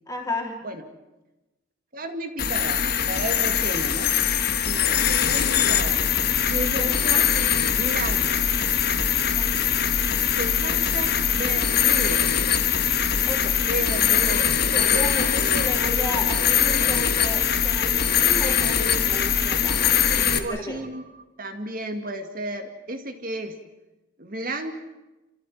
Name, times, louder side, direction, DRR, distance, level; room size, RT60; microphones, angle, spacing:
voice 1, 0.1-0.6 9.3-9.7 13.3-13.6 14.7-15.4 15.6-20.8, left 2 dB, 15° left, 0 dB, 3.5 m, -34 dB
voice 2, 1.9-2.8 3.1-4.1 4.7-6.0 6.5-7.3 7.7-8.5 10.4-12.4 13.5-17.2 20.2-21.1 21.4-23.6 24.2-24.7, right 1 dB, 45° right, 6 dB, 2.2 m, -33 dB
sound 1, 2.4-20.4, left 8 dB, 55° left, 1.6 m, -22 dB
28.5 x 15.0 x 9.5 m, 1.1 s
head